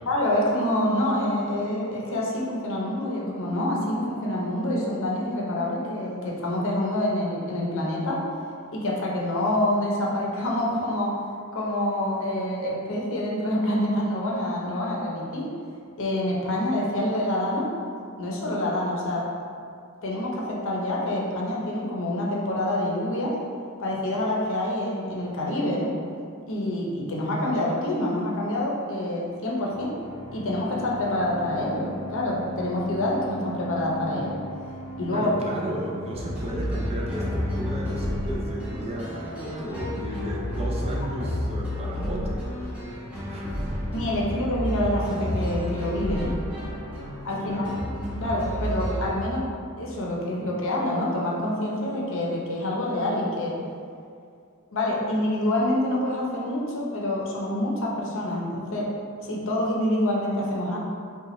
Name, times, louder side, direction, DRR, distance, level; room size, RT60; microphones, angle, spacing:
voice 1, 0.1-8.2 8.7-11.2 11.5-15.5 16.0-17.7 18.2-19.3 20.0-23.4 23.8-25.9 26.5-29.9 30.3-34.4 35.0-35.3 43.9-46.3 47.2-47.8 48.2-49.4 49.8-53.6 54.7-58.9 59.2-60.8, left 1 dB, 60° left, -3 dB, 0.7 m, -26 dB
sound 1, 29.6-41.3, equal, 55° right, 1.0 m, -39 dB
voice 2, 35.1-42.5 42.7-42.9 43.3-43.9 47.2-47.8, right 1 dB, 30° right, -3 dB, 0.5 m, -34 dB
sound 2, 36.1-49.2, equal, 5° right, 1.0 m, -31 dB
5.0 x 2.3 x 3.1 m, 2.3 s
head